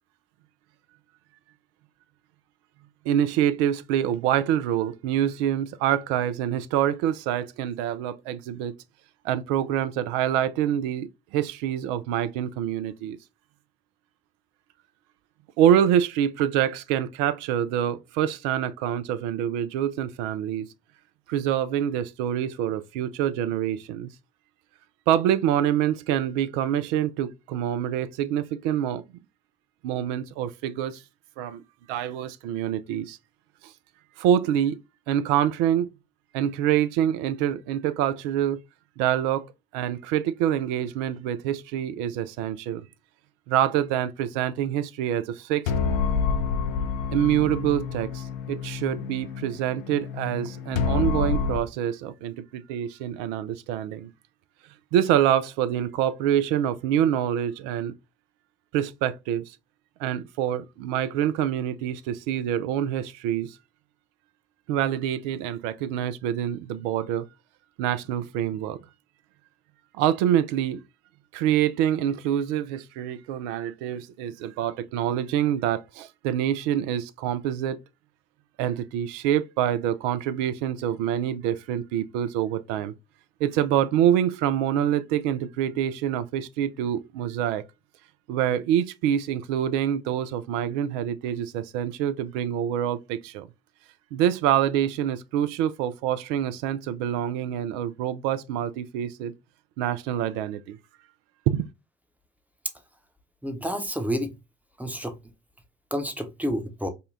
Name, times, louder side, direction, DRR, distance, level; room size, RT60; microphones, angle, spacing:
voice 1, 3.1-8.7 9.3-11.1 11.3-13.2 15.6-20.7 21.3-24.1 25.1-29.0 29.8-30.9 31.4-31.6 31.9-33.2 34.2-34.8 35.1-35.9 36.3-38.6 39.0-39.4 39.7-42.8 43.5-45.7 47.1-48.1 48.5-54.1 54.9-57.9 58.7-59.4 60.0-63.5 64.7-67.3 67.8-68.8 70.0-70.8 71.3-77.8 78.6-82.9 83.4-87.6 88.3-93.5 94.1-99.3 99.8-100.6 101.5-101.7, right 10 dB, 70° right, 0.5 m, -26 dB
sound 1, 45.7-51.6, left 5 dB, 85° left, 0.5 m, -28 dB
voice 2, 103.4-104.3 104.8-105.2 105.9-106.9, equal, 5° right, 0.8 m, -29 dB
5.3 x 2.2 x 2.5 m
figure-of-eight pair, 50°, 39 cm